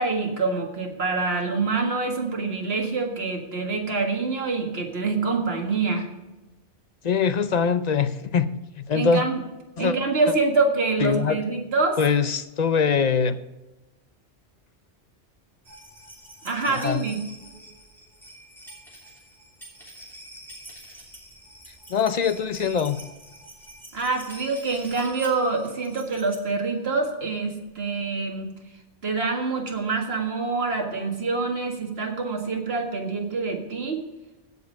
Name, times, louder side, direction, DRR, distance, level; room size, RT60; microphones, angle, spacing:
voice 1, 0.0-6.1 8.9-9.4 9.8-12.0 16.4-17.2 23.9-28.5 29.0-34.0, right 3 dB, 60° right, 2 dB, 2.0 m, -26 dB
voice 2, 7.0-8.5 8.8-9.2 9.8-9.9 11.0-11.4 12.0-13.4 16.7-17.0 21.9-23.0, left 6 dB, 45° left, 12 dB, 0.6 m, -22 dB
sound 1, 15.6-26.4 27.5-27.6 27.8-27.9, right 1 dB, ahead, 2.9 m, -46 dB
16.0 x 5.5 x 5.2 m, 1.1 s
omnidirectional pair, 1.2 m